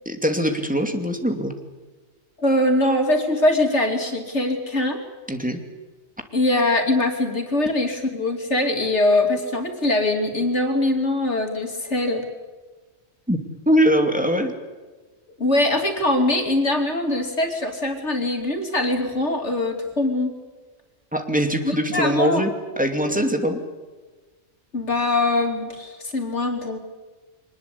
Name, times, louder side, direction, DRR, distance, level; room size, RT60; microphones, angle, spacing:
voice 1, 0.1-1.5 5.3-5.6 13.3-13.4 13.7-14.5 21.1-23.6, equal, 5° right, 5 dB, 2.5 m, -22 dB
voice 2, 2.4-5.0 6.3-12.2 15.4-20.3 21.6-22.4 24.7-26.8, left 2 dB, 85° left, 3 dB, 3.2 m, -22 dB
24.0 x 20.0 x 8.4 m, 1.3 s
omnidirectional pair, 1.2 m